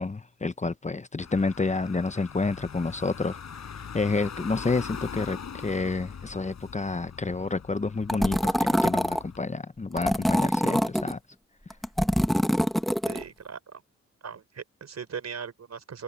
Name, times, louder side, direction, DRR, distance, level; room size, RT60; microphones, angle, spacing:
voice 1, 0.0-3.4 3.9-11.2, left 3 dB, 25° left, 0.9 m, -29 dB
Car / Engine, 1.2-9.4, left 7 dB, 65° left, 6.5 m, -42 dB
sound 1, 8.1-9.2 10.0-11.1 11.7-13.2, equal, ahead, 1.4 m, -24 dB
voice 2, 13.0-13.8 14.2-16.0, right 6 dB, 60° right, 4.4 m, -39 dB
cardioid pair, 55°, 29 cm